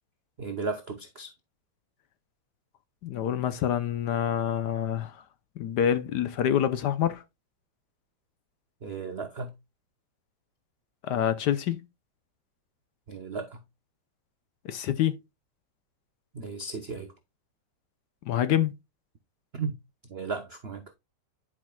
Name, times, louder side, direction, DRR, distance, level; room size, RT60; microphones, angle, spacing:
voice 1, 0.4-1.3 8.8-9.5 13.1-13.6 16.3-17.1 19.5-19.8 20.0-20.9, right 4 dB, 90° right, 0.5 m, -35 dB
voice 2, 3.0-5.2 5.6-7.2 11.0-11.8 14.6-15.2 18.3-18.7, left 10 dB, 70° left, 1.1 m, -26 dB
11.0 x 5.0 x 2.2 m
omnidirectional pair, 2.2 m